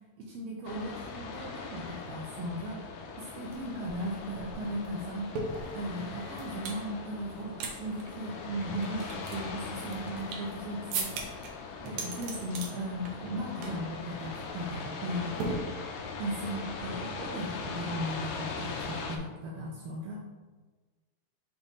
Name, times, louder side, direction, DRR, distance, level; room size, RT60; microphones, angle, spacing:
voice 1, 0.2-2.9 3.2-5.3 5.7-11.1 11.8-15.6 16.2-20.2, right 1 dB, 90° right, -2 dB, 1.4 m, -37 dB
sound 1, 0.6-19.2, left 4 dB, 85° left, 2.2 m, -40 dB
sound 2, 3.5-3.6 3.8-6.8 7.3-7.7 8.0-8.1 8.6-10.5 10.9-11.5 11.9-12.7 13.1-13.4 13.6-13.9 14.2-14.4 15.4-16.2, right 3 dB, 70° right, 1.8 m, -37 dB
6.6 x 3.4 x 4.1 m, 1.3 s
omnidirectional pair, 3.8 m